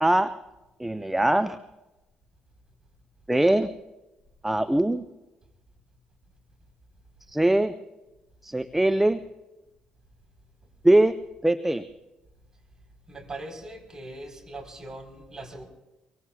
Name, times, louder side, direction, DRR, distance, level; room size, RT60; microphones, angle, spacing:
voice 1, 0.0-0.3 0.8-1.6 3.3-3.7 4.4-5.0 7.3-7.8 8.4-9.2 10.8-11.2 11.4-11.8, right 1 dB, 10° right, 13 dB, 0.6 m, -21 dB
voice 2, 13.1-15.6, right 2 dB, 25° right, 3 dB, 4.5 m, -40 dB
25.0 x 23.0 x 2.4 m, 1.0 s
figure-of-eight pair, 45°, 3 cm